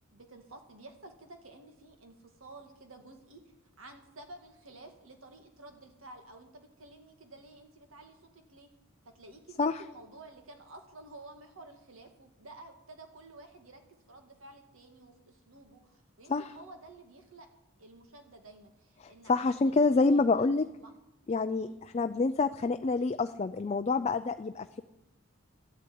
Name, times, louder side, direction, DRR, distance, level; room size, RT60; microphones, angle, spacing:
voice 1, 0.1-3.4 3.8-8.7 9.0-13.8 14.1-17.5 17.8-20.5 20.8-20.9 21.5-21.8, right 2 dB, 80° right, 5 dB, 2.0 m, -52 dB
voice 2, 19.0-20.7 21.3-24.8, left 3 dB, 30° left, 9 dB, 0.4 m, -27 dB
12.5 x 8.2 x 9.3 m, 0.92 s
head